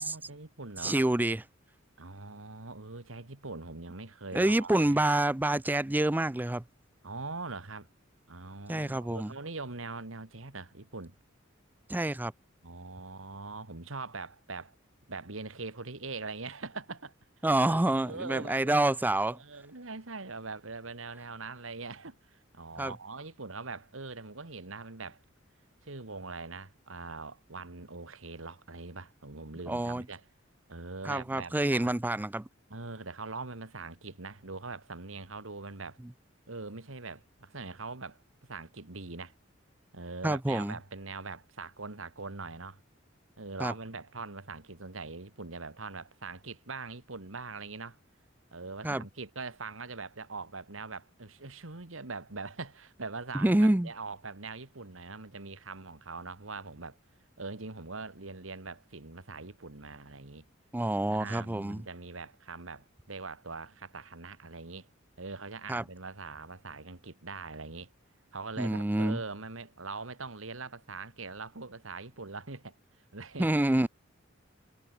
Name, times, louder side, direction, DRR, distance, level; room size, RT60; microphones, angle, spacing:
voice 1, 0.0-1.0 2.0-5.0 7.0-7.9 8.3-11.1 12.6-14.7 15.1-17.1 17.7-18.7 19.2-25.2 25.8-30.2 30.7-31.9 32.7-36.0 36.5-38.2 38.5-39.3 39.9-42.8 43.4-48.0 48.5-57.0 57.4-60.4 61.1-64.9 65.2-67.9 68.3-72.7 73.1-73.5, right 3 dB, 80° right, 2.1 m, -42 dB
voice 2, 0.8-1.4 4.3-6.6 8.7-9.3 11.9-12.3 17.4-19.4 22.8-22.9 29.7-30.0 31.0-32.4 40.2-40.7 43.6-43.7 48.8-49.0 53.3-53.9 60.7-61.8 65.7-65.8 68.6-69.2 73.4-73.9, right 1 dB, 10° right, 0.4 m, -27 dB
head